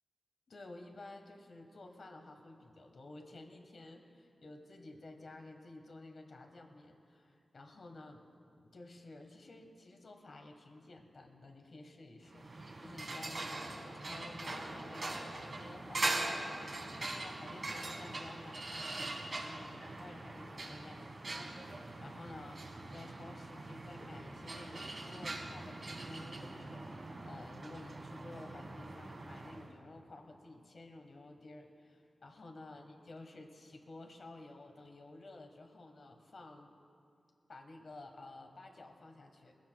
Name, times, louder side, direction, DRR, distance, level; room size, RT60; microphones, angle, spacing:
voice 1, 0.5-8.2 8.6-36.7 37.5-39.5, left 2 dB, 65° left, 4 dB, 1.4 m, -53 dB
sound 1, 12.3-29.7, right 2 dB, 55° right, 1.8 m, -42 dB
21.0 x 16.0 x 2.3 m, 2.4 s
cardioid pair, 65°, 0 cm